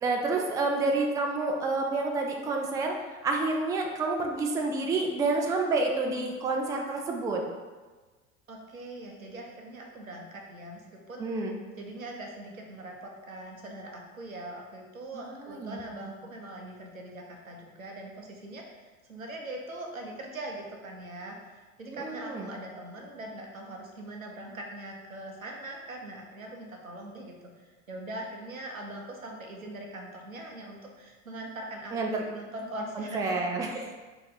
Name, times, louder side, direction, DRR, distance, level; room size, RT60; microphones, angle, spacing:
voice 1, 0.0-2.9 3.2-7.4 11.2-11.6 15.1-16.1 21.9-22.5 31.9-32.2 33.0-33.7, right 3 dB, 10° right, 1 dB, 0.3 m, -29 dB
voice 2, 8.5-11.4 11.8-18.8 19.1-31.9 32.3-33.4, right 1 dB, 90° right, 1 dB, 0.7 m, -42 dB
4.0 x 2.9 x 4.0 m, 1.3 s
figure-of-eight pair, 75°, 39 cm